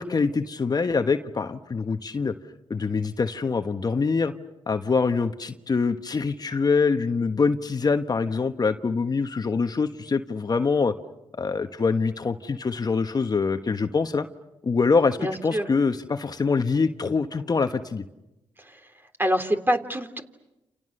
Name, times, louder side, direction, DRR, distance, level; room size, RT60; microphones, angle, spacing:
voice 1, 0.0-2.3 2.7-4.3 4.7-10.9 11.3-14.3 14.6-18.0, left 4 dB, 40° left, 8 dB, 1.3 m, -24 dB
voice 2, 15.2-15.7 18.6-18.9 19.2-20.2, equal, 20° right, 7 dB, 3.3 m, -26 dB
29.0 x 29.0 x 6.7 m, 0.97 s
supercardioid pair, 50°, 10 cm